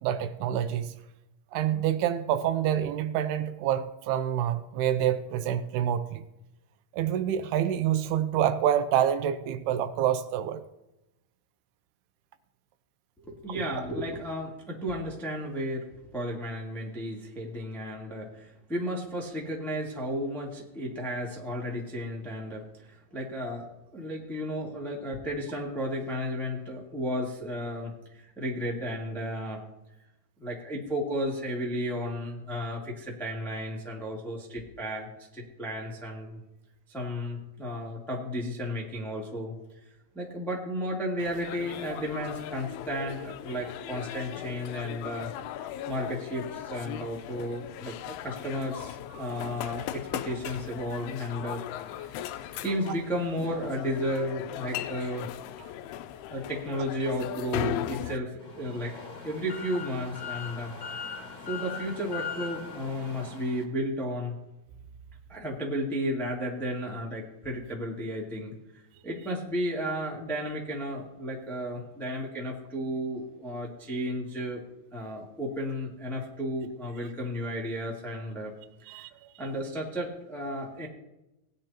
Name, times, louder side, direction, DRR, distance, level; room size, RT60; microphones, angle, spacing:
voice 1, 0.0-0.9 1.5-6.2 6.9-10.6 49.2-49.3 52.6-53.0 78.9-79.1, right 10 dB, 80° right, 11 dB, 2.5 m, -27 dB
voice 2, 13.2-15.9 16.1-29.6 30.4-36.4 36.9-39.5 39.8-45.3 45.8-51.6 52.0-52.2 52.6-55.3 56.3-60.7 61.4-64.3 65.3-74.6 74.9-78.5 78.8-79.0 79.4-80.9, equal, ahead, -3 dB, 0.5 m, -33 dB
sound 1, 41.2-58.2, left 12 dB, 80° left, 2.4 m, -38 dB
sound 2, 58.4-63.6, left 6 dB, 40° left, 1.3 m, -40 dB
19.0 x 10.0 x 2.9 m, 0.95 s
omnidirectional pair, 4.8 m